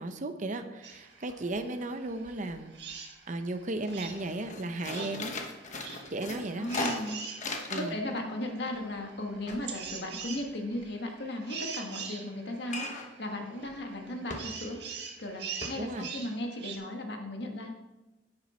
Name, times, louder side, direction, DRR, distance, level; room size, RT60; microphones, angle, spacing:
voice 1, 0.0-2.7 3.3-5.3 6.1-6.7 7.7-8.0 15.8-16.1, right 2 dB, 45° right, 9 dB, 0.7 m, -35 dB
sound 1, 0.8-16.8, right 6 dB, 65° right, 1.6 m, -44 dB
sound 2, 0.9-1.0 1.3-1.8 2.1-2.9 3.3-3.5 3.8-8.1 8.4-10.8 12.7-13.2 13.6-13.8 14.3-14.8 15.2-15.3 15.6-15.7, left 2 dB, 40° left, 1.2 m, -39 dB
voice 2, 6.6-7.2 7.7-14.8 15.2-17.7, left 1 dB, 65° left, 2 dB, 1.7 m, -36 dB
9.9 x 8.8 x 4.4 m, 1.0 s
head